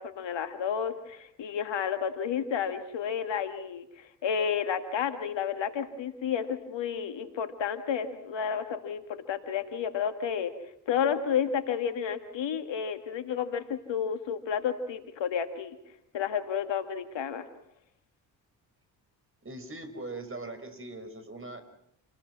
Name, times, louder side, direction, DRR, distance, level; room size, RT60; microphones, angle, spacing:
voice 1, 0.0-10.5 10.9-15.8 16.1-17.4, left 7 dB, 60° left, 8 dB, 2.3 m, -31 dB
voice 2, 19.4-21.6, right 2 dB, 25° right, 8 dB, 5.5 m, -40 dB
28.5 x 20.5 x 6.1 m, 0.74 s
hypercardioid pair, 45°, 50 cm